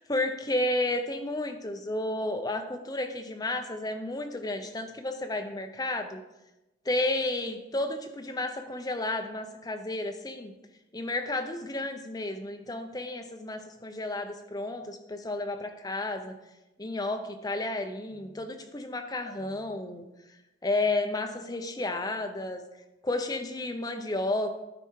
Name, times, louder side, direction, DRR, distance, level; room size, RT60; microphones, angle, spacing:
voice 1, 0.0-6.2 6.9-10.5 10.9-16.3 16.8-20.1 20.6-22.6 23.0-24.5, left 2 dB, 20° left, 6 dB, 0.6 m, -32 dB
11.5 x 4.5 x 4.7 m, 0.99 s
head